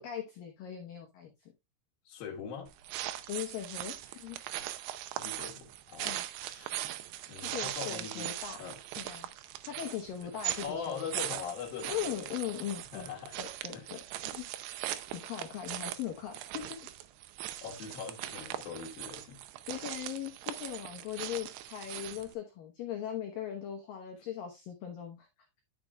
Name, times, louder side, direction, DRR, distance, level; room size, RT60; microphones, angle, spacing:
voice 1, 0.0-1.5 3.3-4.4 6.0-6.2 7.4-8.6 9.0-11.2 11.9-13.1 13.4-14.0 14.3-14.5 15.1-16.8 19.7-25.3, left 10 dB, 80° left, 2.0 m, -39 dB
voice 2, 2.0-2.7 5.2-8.3 8.6-8.8 10.2-10.3 10.6-12.3 12.9-13.4 13.7-14.0 17.6-19.4, left 7 dB, 60° left, 2.7 m, -42 dB
sound 1, 2.7-22.3, right 14 dB, 85° right, 2.4 m, -40 dB
11.0 x 6.8 x 2.3 m
omnidirectional pair, 5.7 m